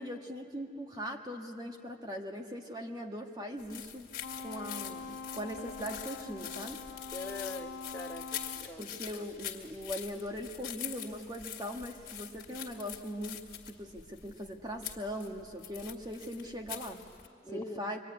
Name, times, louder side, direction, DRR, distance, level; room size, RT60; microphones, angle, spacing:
voice 1, 0.0-4.1 4.4-6.8 8.8-17.0 17.5-18.0, equal, 25° right, 2 dB, 1.7 m, -40 dB
sound 1, 3.6-17.3, left 10 dB, 50° left, 2.1 m, -44 dB
Wind instrument woodwind instrument, 4.2-8.7, left 4 dB, 75° left, 1.0 m, -44 dB
voice 2, 7.1-8.9 17.4-17.8, left 2 dB, 15° left, 2 dB, 1.2 m, -42 dB
25.5 x 23.5 x 9.7 m, 2.4 s
head